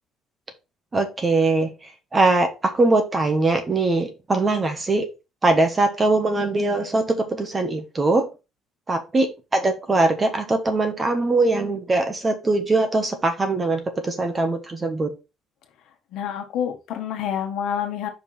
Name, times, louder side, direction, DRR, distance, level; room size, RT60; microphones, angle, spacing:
voice 1, 0.9-1.7 2.1-5.0 5.4-8.3 8.9-15.1, right 2 dB, 20° right, 7 dB, 1.1 m, -21 dB
voice 2, 16.1-18.1, left 9 dB, 65° left, 5 dB, 1.3 m, -28 dB
5.3 x 4.6 x 4.3 m, 0.28 s
cardioid pair, 160°, 0 cm